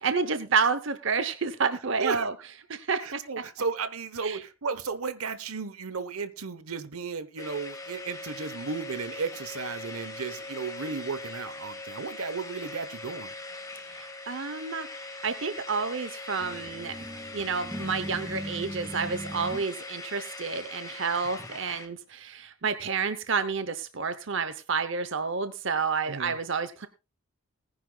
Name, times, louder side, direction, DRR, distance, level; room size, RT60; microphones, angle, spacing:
voice 1, 0.0-2.3 2.7-3.2 4.2-4.4 13.9-17.0 17.3-26.9, right 5 dB, 60° right, 0.8 m, -30 dB
voice 2, 3.0-13.3 26.1-26.4, right 5 dB, 85° right, 1.0 m, -34 dB
sound 1, 7.4-21.9, left 2 dB, 15° left, 1.3 m, -41 dB
sound 2, 16.4-19.7, right 1 dB, 10° right, 0.9 m, -39 dB
20.0 x 10.0 x 2.3 m
head